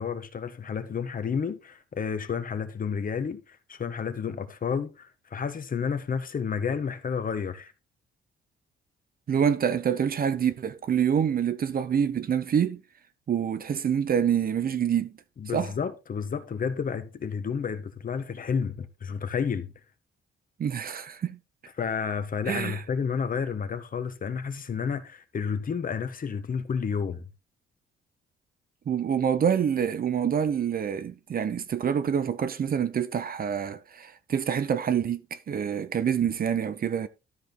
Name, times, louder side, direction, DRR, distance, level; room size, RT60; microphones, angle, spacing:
voice 1, 0.0-7.7 15.4-19.7 21.8-27.2, left 6 dB, 45° left, 1.6 m, -31 dB
voice 2, 9.3-12.8 13.3-15.1 15.5-15.7 20.6-21.4 22.5-22.8 28.9-37.1, right 8 dB, 50° right, 1.0 m, -26 dB
13.0 x 5.1 x 4.0 m
cardioid pair, 90°, 20 cm